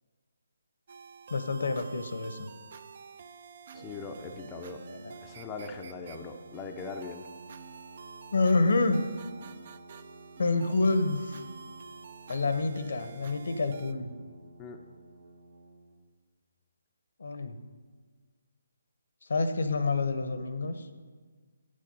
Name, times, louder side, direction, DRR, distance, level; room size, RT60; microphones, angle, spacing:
sound 1, 0.9-13.9, right 6 dB, 50° right, 0.5 m, -49 dB
voice 1, 1.3-2.5 4.9-5.1 8.3-9.0 10.4-11.4 12.3-14.1 17.2-17.6 19.3-20.9, left 3 dB, 70° left, 9 dB, 0.8 m, -28 dB
voice 2, 3.7-4.8 5.2-7.2 14.6-14.8, left 4 dB, 15° left, 3 dB, 0.5 m, -40 dB
Brass instrument, 3.7-16.0, right 2 dB, 75° right, 1.6 m, -52 dB
7.9 x 6.5 x 5.4 m, 1.5 s
figure-of-eight pair, 150°, 0 cm